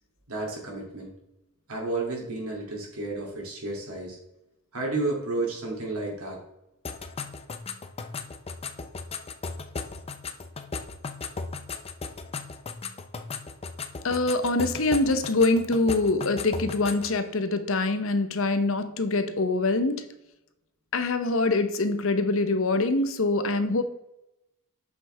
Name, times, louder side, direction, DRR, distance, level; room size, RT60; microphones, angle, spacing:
voice 1, 0.3-1.1 1.7-4.2 4.7-6.4, right 2 dB, 75° right, -1 dB, 2.5 m, -31 dB
sound 1, 6.8-17.2, left 4 dB, 25° left, 0.5 m, -37 dB
voice 2, 14.0-20.1 20.9-23.8, left 2 dB, 60° left, 10 dB, 0.7 m, -24 dB
8.2 x 5.7 x 3.3 m, 0.88 s
head